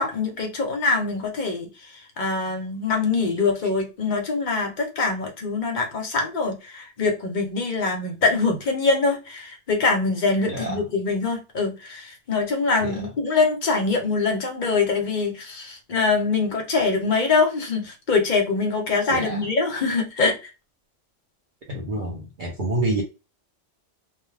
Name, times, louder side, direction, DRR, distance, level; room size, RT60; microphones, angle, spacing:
voice 1, 0.0-20.5, left 4 dB, 50° left, 0.7 m, -24 dB
voice 2, 10.5-10.8 12.8-13.0 19.1-19.5 21.7-23.0, right 1 dB, 50° right, 0.7 m, -27 dB
2.2 x 2.2 x 3.2 m
omnidirectional pair, 1.2 m